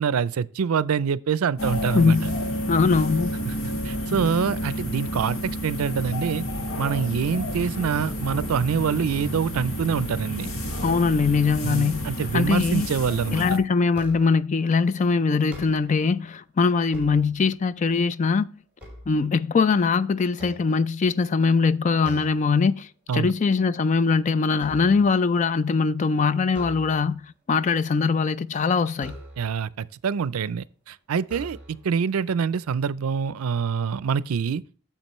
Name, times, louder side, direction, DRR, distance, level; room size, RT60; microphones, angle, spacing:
voice 1, 0.0-2.2 3.5-6.4 6.8-10.5 11.6-13.4 23.1-23.3 29.4-34.6, right 6 dB, 90° right, 0.4 m, -25 dB
sound 1, 1.6-13.6, equal, 75° left, 1.7 m, -30 dB
voice 2, 1.9-2.4 2.7-3.3 10.8-12.1 12.3-12.9 13.3-18.5 19.1-22.9 23.1-29.1, left 4 dB, 35° left, 0.3 m, -22 dB
sound 2, 13.9-14.5 15.3-16.1 16.7-17.8 18.3-19.8 20.3-21.3 22.0-22.5 22.9-23.2 23.5-25.2 26.5-27.3 28.9-29.7 30.5-30.6 31.2-32.0, equal, 5° right, 3.0 m, -44 dB
9.7 x 7.1 x 3.1 m
head